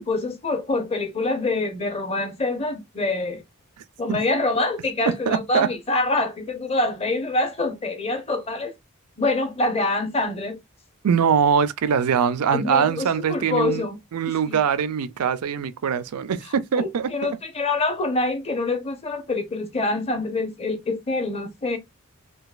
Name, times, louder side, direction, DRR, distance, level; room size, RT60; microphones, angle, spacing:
voice 1, 0.0-3.4 4.0-8.7 9.2-10.6 12.5-14.0 14.5-14.6 16.7-21.8, left 2 dB, 25° left, 0.8 m, -25 dB
voice 2, 5.1-5.7 11.0-13.8 14.1-17.4, right 7 dB, 80° right, 0.4 m, -22 dB
3.9 x 2.4 x 2.4 m
head